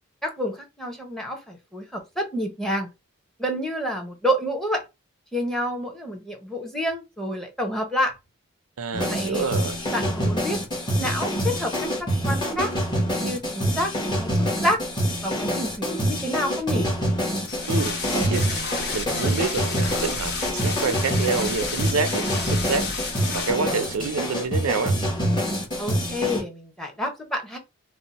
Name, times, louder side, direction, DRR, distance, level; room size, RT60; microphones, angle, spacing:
voice 1, 0.2-2.9 3.4-4.8 5.3-8.1 9.1-9.5 9.9-10.6 11.0-12.7 13.2-13.9 14.2-14.8 15.2-16.9 25.8-27.6, equal, ahead, 0.6 m, -28 dB
voice 2, 8.8-9.8 17.7-18.5 18.9-25.0, right 4 dB, 85° right, 0.5 m, -28 dB
sound 1, 8.9-26.4, equal, 20° left, 1.0 m, -26 dB
sound 2, 17.5-23.5, left 4 dB, 50° left, 0.9 m, -31 dB
2.7 x 2.0 x 3.9 m
head